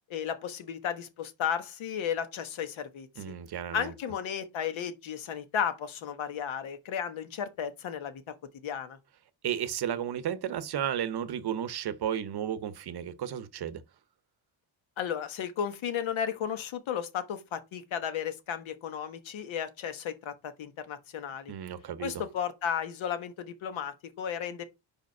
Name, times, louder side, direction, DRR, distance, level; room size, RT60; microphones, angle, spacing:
voice 1, 0.1-3.3 3.7-8.2 8.6-9.0 15.0-21.5 22.0-24.6, left 8 dB, 75° left, 1.3 m, -34 dB
voice 2, 3.2-3.9 9.4-13.8 21.5-22.2, right 9 dB, 55° right, 0.7 m, -33 dB
5.0 x 4.9 x 5.9 m
wide cardioid pair, 170°, 48 cm